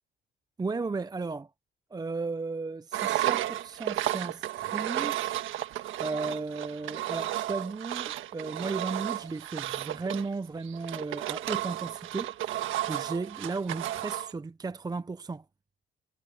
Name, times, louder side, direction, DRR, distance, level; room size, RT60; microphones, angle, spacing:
voice 1, 0.6-1.5 1.9-5.3 6.0-15.4, right 3 dB, 20° right, 0.6 m, -35 dB
Engine, 2.9-14.3, right 13 dB, 85° right, 1.5 m, -33 dB
cardioid pair, 90°, 20 cm